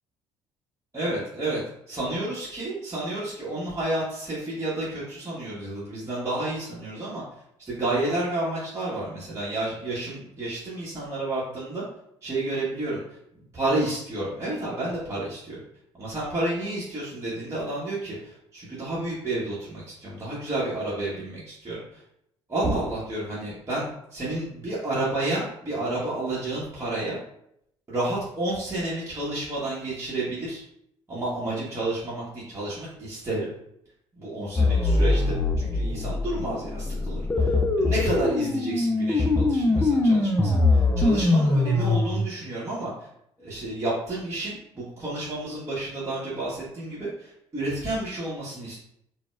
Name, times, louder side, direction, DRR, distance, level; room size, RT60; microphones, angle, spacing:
voice 1, 0.9-1.6 1.9-7.2 7.6-11.8 12.2-13.2 13.5-15.6 16.0-22.0 22.5-27.2 27.9-30.6 31.1-33.5 34.2-35.2 35.6-43.1 43.4-48.8, right 2 dB, 20° right, -9 dB, 1.0 m, -30 dB
sound 1, 34.6-42.2, left 2 dB, 15° left, 0.4 m, -22 dB
3.9 x 2.1 x 2.3 m, 0.76 s
figure-of-eight pair, 50°, 15 cm